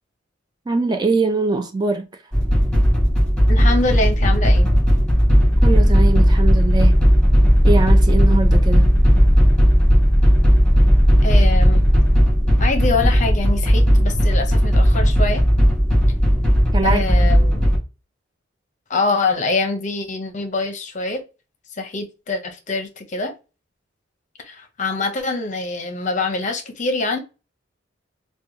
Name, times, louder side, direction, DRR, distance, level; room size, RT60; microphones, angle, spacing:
voice 1, 0.7-2.1 5.6-7.0 7.6-8.9 16.7-17.3, right 3 dB, 20° right, 0.3 m, -22 dB
sound 1, 2.3-17.8, equal, 5° left, 1.5 m, -15 dB
voice 2, 3.5-4.7 11.2-11.8 12.6-15.4 16.8-17.7 18.9-21.2 21.8-23.3 24.4-27.2, left 3 dB, 40° left, 0.6 m, -24 dB
3.4 x 2.2 x 3.0 m
head